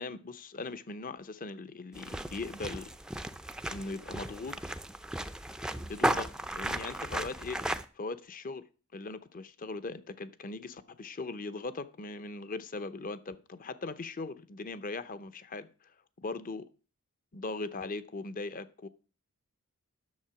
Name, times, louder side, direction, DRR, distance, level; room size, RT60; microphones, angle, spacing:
voice 1, 0.0-2.9 3.7-4.6 5.8-7.6 7.9-8.6 8.9-16.7 17.3-18.9, left 3 dB, 40° left, 0.7 m, -40 dB
sound 1, 1.9-7.8, right 1 dB, 5° right, 0.4 m, -35 dB
10.5 x 6.8 x 5.8 m
head